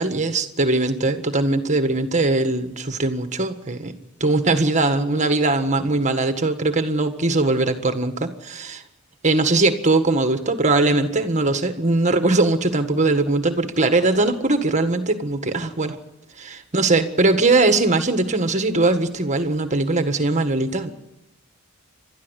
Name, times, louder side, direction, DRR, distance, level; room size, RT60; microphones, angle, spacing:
voice 1, 0.0-3.9 4.2-8.8 9.2-16.0 16.4-20.9, right 2 dB, 35° right, 8 dB, 1.7 m, -20 dB
29.5 x 13.0 x 8.2 m, 0.95 s
head